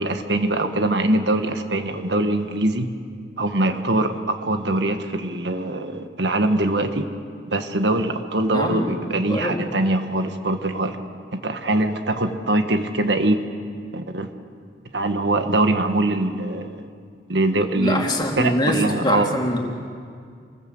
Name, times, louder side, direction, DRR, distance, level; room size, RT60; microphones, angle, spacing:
voice 1, 0.0-2.9 3.4-7.1 7.5-11.0 11.3-13.5 13.9-14.3 14.9-16.7 17.3-19.3, right 2 dB, 70° right, 7 dB, 1.6 m, -22 dB
voice 2, 8.5-9.0 9.3-9.6 17.8-19.6, left 1 dB, 25° left, 0 dB, 3.1 m, -24 dB
28.0 x 20.5 x 7.9 m, 2.2 s
head